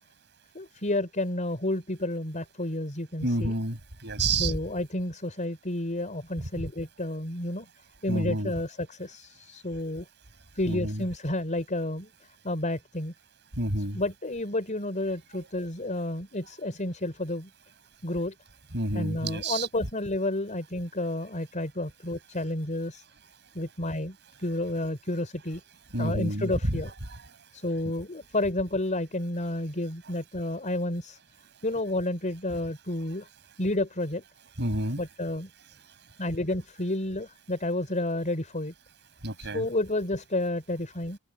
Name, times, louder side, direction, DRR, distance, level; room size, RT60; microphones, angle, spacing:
voice 1, 0.5-3.5 4.4-7.7 8.0-10.0 10.5-12.1 12.4-13.1 13.9-17.5 18.0-18.3 18.9-23.0 23.5-25.6 26.0-26.9 27.5-31.2 31.6-33.3 33.6-34.2 35.0-35.5 36.2-38.7 39.4-41.2, left 1 dB, 35° left, 4.8 m, -30 dB
voice 2, 3.2-4.6 6.4-6.7 8.1-8.5 10.7-11.0 13.6-14.0 18.7-19.7 25.9-26.8 34.6-35.0 39.2-39.7, right 2 dB, 50° right, 5.9 m, -29 dB
open air
head